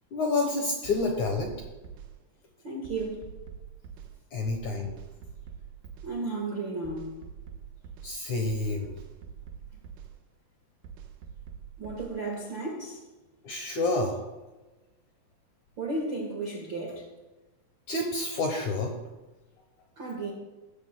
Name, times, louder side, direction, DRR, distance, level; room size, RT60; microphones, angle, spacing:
voice 1, 0.1-1.6 4.3-5.0 8.0-8.9 13.4-14.2 17.9-18.9, left 2 dB, 70° left, 2 dB, 1.9 m, -28 dB
sound 1, 0.8-2.1 2.8-4.1 4.5-6.1 6.8-8.1 8.5-10.1 10.8-12.1, right 7 dB, 70° right, 2.6 m, -44 dB
voice 2, 2.6-3.2 6.0-7.1 11.8-13.0 15.8-17.0 20.0-20.3, right 3 dB, 55° right, -1 dB, 1.3 m, -34 dB
16.0 x 13.5 x 2.2 m, 1.1 s
omnidirectional pair, 4.8 m